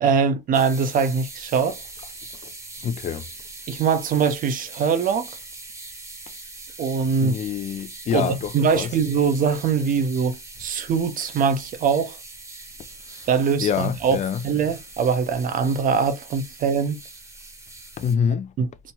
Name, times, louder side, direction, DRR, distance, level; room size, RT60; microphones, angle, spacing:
voice 1, 0.0-1.8 3.7-5.3 6.8-7.4 8.1-12.2 13.3-14.2 14.4-17.0 18.6-18.7, right 6 dB, 55° right, 0.7 m, -22 dB
sound 1, 0.5-18.2, right 2 dB, 20° right, 0.9 m, -41 dB
voice 2, 2.8-3.2 7.2-8.9 13.1-13.3 13.6-14.4 18.0-18.5, left 7 dB, 45° left, 0.4 m, -26 dB
3.0 x 2.1 x 2.8 m
cardioid pair, 110°, 17 cm